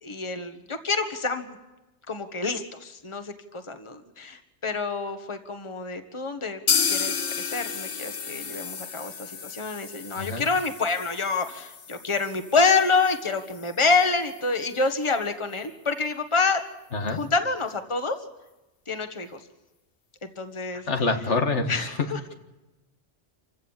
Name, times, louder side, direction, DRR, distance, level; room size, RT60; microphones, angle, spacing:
voice 1, 0.0-1.6 2.1-6.6 6.9-16.6 17.1-18.2 18.9-19.4 20.4-20.9 21.7-22.2, left 4 dB, 25° left, 7 dB, 1.5 m, -27 dB
sound 1, 6.7-14.4 14.7-14.8 15.1-15.2 15.6-15.7, left 6 dB, 55° left, 1.2 m, -32 dB
voice 2, 20.9-21.7, left 3 dB, 80° left, 6 dB, 1.9 m, -25 dB
27.5 x 16.0 x 7.4 m, 1.1 s
omnidirectional pair, 1.2 m